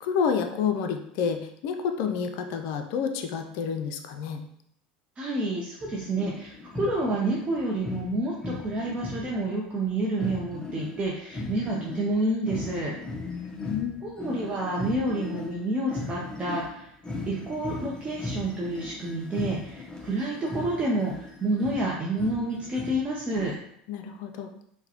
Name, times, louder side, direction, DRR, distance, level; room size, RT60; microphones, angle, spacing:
voice 1, 0.0-4.4 13.2-14.0 23.9-24.5, left 6 dB, 60° left, 6 dB, 0.4 m, -29 dB
voice 2, 5.2-12.9 14.0-16.9 17.3-23.5, right 1 dB, 25° right, -4 dB, 0.6 m, -29 dB
sound 1, 5.8-9.5 9.8-9.9 10.2-23.6, left 2 dB, 15° left, 0.6 m, -38 dB
3.8 x 2.2 x 2.9 m, 0.70 s
hypercardioid pair, 85°, 4 cm